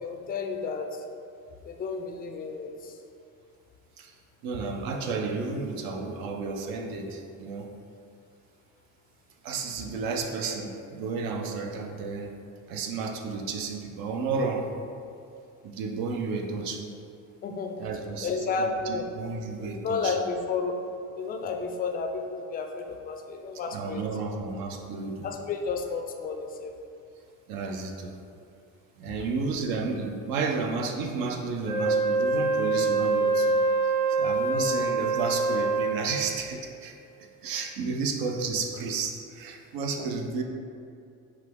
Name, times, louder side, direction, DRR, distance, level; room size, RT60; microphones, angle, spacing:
voice 1, 0.0-1.0 1.6-3.0 17.4-17.8 18.2-19.1 19.6-20.8 21.2-24.0 25.2-26.7 34.2-34.3 40.0-40.1, left 4 dB, 25° left, 4 dB, 0.4 m, -32 dB
voice 2, 4.0-7.7 9.4-12.4 12.7-14.7 15.6-16.9 17.8-20.1 23.7-25.3 27.5-28.2 29.0-33.6 33.8-37.0 37.4-40.4, right 4 dB, 60° right, 3 dB, 0.7 m, -32 dB
Wind instrument woodwind instrument, 31.6-36.0, right 3 dB, 85° right, 1.0 m, -25 dB
5.6 x 2.3 x 3.5 m, 2.4 s
supercardioid pair, 80°, 40 cm